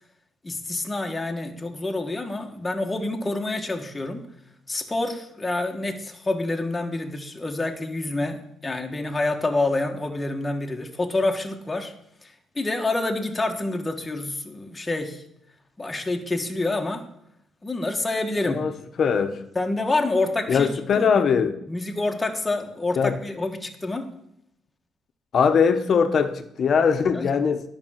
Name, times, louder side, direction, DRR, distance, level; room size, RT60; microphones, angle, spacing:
voice 1, 0.4-4.3 4.7-11.9 12.2-15.2 15.8-17.0 17.6-18.6 19.5-20.7 20.9-21.2 21.7-24.1 27.1-27.3, left 2 dB, 15° left, 1.3 m, -27 dB
voice 2, 19.0-19.4 20.5-21.6 23.0-23.2 25.3-27.6, left 6 dB, 50° left, 1.1 m, -21 dB
10.5 x 5.3 x 7.4 m
cardioid pair, 100°, 0 cm